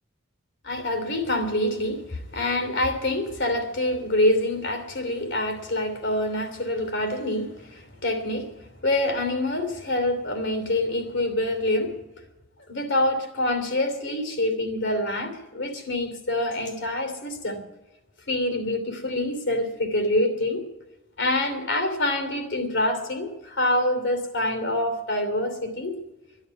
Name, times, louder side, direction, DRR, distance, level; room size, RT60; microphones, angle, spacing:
voice 1, 0.6-11.9 12.7-17.6 18.3-20.6 21.2-25.9, left 1 dB, 65° left, 7 dB, 2.9 m, -26 dB
12.0 x 11.5 x 9.4 m, 1.1 s
head